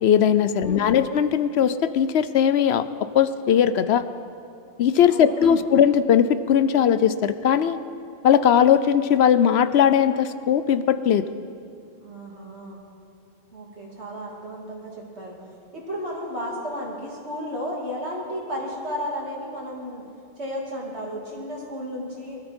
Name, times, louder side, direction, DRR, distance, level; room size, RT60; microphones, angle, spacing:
voice 1, 0.0-2.8 3.1-4.1 4.8-7.8 8.2-11.2, left 8 dB, 70° left, 13 dB, 0.9 m, -19 dB
voice 2, 0.6-1.0 5.1-5.7 12.0-12.8 13.5-15.3 15.7-20.0 20.4-22.4, equal, 70° right, -3 dB, 3.3 m, -33 dB
23.0 x 13.0 x 4.4 m, 2.4 s
omnidirectional pair, 1.2 m